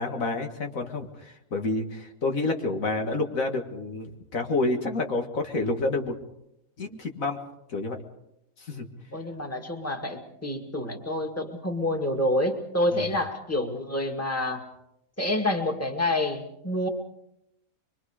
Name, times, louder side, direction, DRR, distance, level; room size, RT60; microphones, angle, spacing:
voice 1, 0.0-6.2 6.8-7.4 7.7-8.0 8.6-8.9 12.9-13.1, left 2 dB, 70° left, 3 dB, 2.2 m, -29 dB
voice 2, 9.1-14.6 15.2-16.9, left 1 dB, 10° left, 4 dB, 2.0 m, -28 dB
24.5 x 24.0 x 5.0 m, 0.82 s
omnidirectional pair, 1.5 m